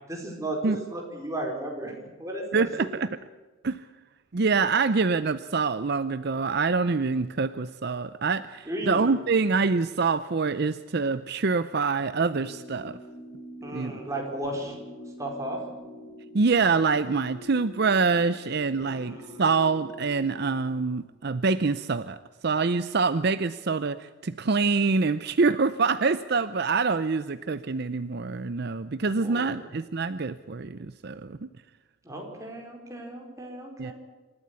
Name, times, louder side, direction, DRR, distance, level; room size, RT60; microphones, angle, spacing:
voice 1, 0.1-2.5 2.8-2.9 8.7-9.1 13.6-14.8 15.2-15.6 18.8-19.4 29.1-29.5 32.0-33.9, right 1 dB, 15° right, 0 dB, 4.8 m, -35 dB
voice 2, 2.5-3.1 3.6-3.9 4.3-13.0 13.7-14.0 16.3-22.2 22.4-31.5 33.8-33.9, right 4 dB, 50° right, 13 dB, 0.6 m, -25 dB
sound 1, 12.3-21.0, left 1 dB, 50° left, 3.4 m, -45 dB
27.0 x 13.5 x 8.4 m, 1.3 s
head